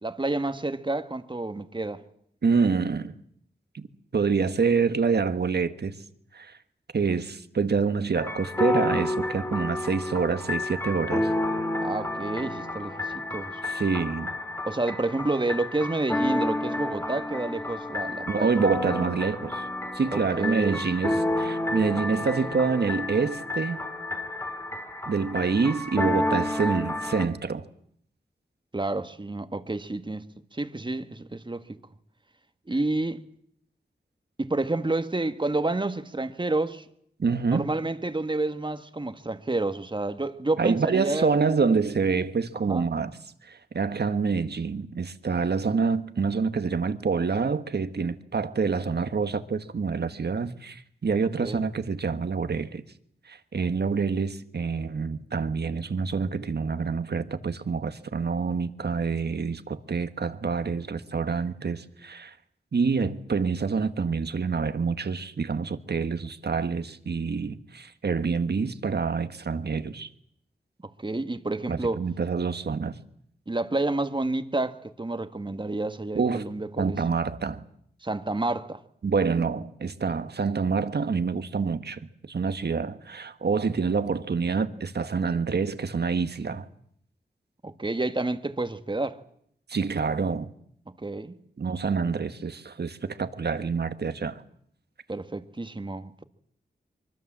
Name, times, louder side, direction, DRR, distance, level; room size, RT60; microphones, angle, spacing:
voice 1, 0.0-2.0 11.8-13.6 14.7-18.5 20.1-20.8 28.7-31.8 32.7-33.2 34.4-36.8 37.5-41.4 42.7-42.9 51.4-51.6 71.0-72.0 73.5-77.0 78.0-78.8 87.6-89.2 91.0-91.4 95.1-96.2, right 2 dB, 25° right, 1.7 m, -29 dB
voice 2, 2.4-3.1 3.7-6.0 6.3-6.6 6.9-11.3 13.6-14.3 18.3-19.7 19.9-23.8 25.1-27.6 37.2-37.7 40.6-43.1 43.4-52.8 53.3-62.3 62.7-70.1 71.7-73.0 76.2-76.4 76.8-77.6 79.0-86.7 89.7-90.5 91.6-94.4, right 5 dB, 65° right, 1.6 m, -27 dB
sound 1, 8.1-27.3, left 1 dB, 15° left, 2.6 m, -30 dB
24.0 x 23.0 x 7.6 m
wide cardioid pair, 70°, 18 cm